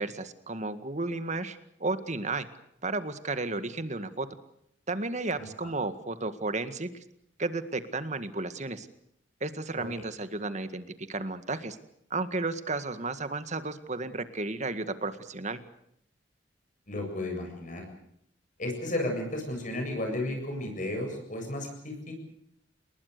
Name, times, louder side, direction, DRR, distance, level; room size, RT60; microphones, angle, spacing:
voice 1, 0.0-2.5 2.8-4.3 4.9-6.9 7.4-8.9 9.4-11.8 12.1-15.6, right 3 dB, 40° right, 11 dB, 1.9 m, -33 dB
voice 2, 16.9-17.8 18.6-22.1, left 1 dB, 45° left, 2 dB, 7.7 m, -33 dB
29.5 x 20.5 x 6.8 m, 0.74 s
head